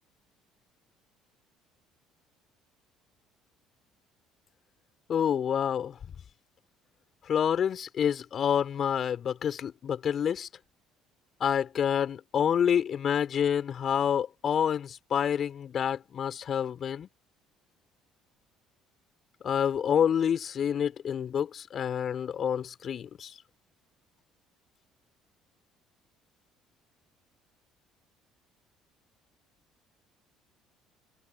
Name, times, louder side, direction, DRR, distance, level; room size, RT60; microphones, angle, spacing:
voice 1, 5.1-6.0 7.2-10.5 11.4-17.1 19.4-23.3, left 8 dB, 50° left, 4.3 m, -28 dB
hypercardioid pair, 65°, 0 cm